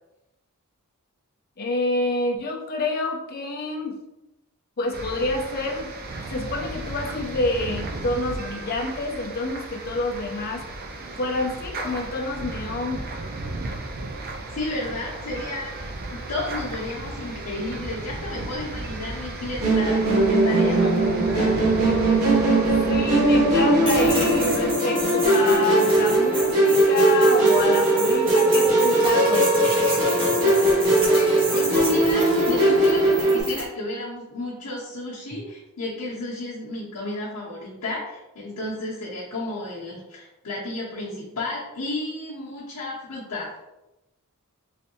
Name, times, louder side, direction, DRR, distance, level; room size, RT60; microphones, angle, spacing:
voice 1, 1.6-4.0 4.8-5.9 6.3-10.6 11.2-13.0 22.9-29.5, left 2 dB, 45° left, 1 dB, 0.5 m, -27 dB
sound 1, 4.9-24.7, right 2 dB, 40° right, 0.4 m, -35 dB
voice 2, 14.5-21.5 31.1-43.5, left 2 dB, 85° left, -8 dB, 0.7 m, -33 dB
Musical instrument, 19.6-33.4, right 2 dB, 70° right, 0.9 m, -19 dB
sound 2, 23.9-33.7, right 1 dB, 25° right, 1.0 m, -32 dB
3.3 x 2.6 x 2.7 m, 0.98 s
head